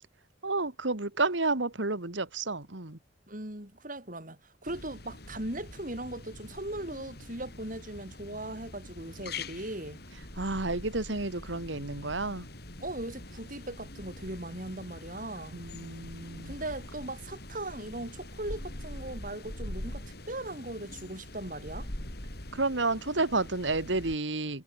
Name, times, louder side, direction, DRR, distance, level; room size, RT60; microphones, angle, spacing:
voice 1, 0.4-3.0 10.4-12.5 15.5-16.5 22.5-24.6, right 3 dB, 75° right, 2.3 m, -31 dB
voice 2, 3.3-10.0 12.8-15.6 16.4-21.9, right 1 dB, 45° right, 5.0 m, -39 dB
sound 1, 4.6-24.2, left 1 dB, 55° left, 5.6 m, -44 dB
head